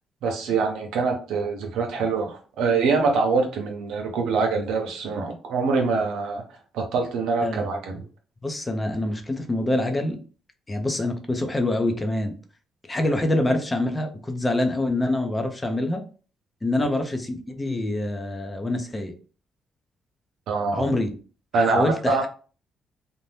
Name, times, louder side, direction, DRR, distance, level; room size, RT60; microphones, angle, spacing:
voice 1, 0.2-6.4 6.7-8.0 16.8-16.9 20.5-20.9 21.5-22.3, right 4 dB, 85° right, 3 dB, 0.7 m, -24 dB
voice 2, 8.4-10.2 10.7-12.3 12.9-16.0 16.6-19.1 20.7-21.1 21.5-22.3, left 1 dB, 20° left, 5 dB, 0.6 m, -25 dB
2.7 x 2.1 x 3.2 m, 0.38 s
cardioid pair, 90°, 0 cm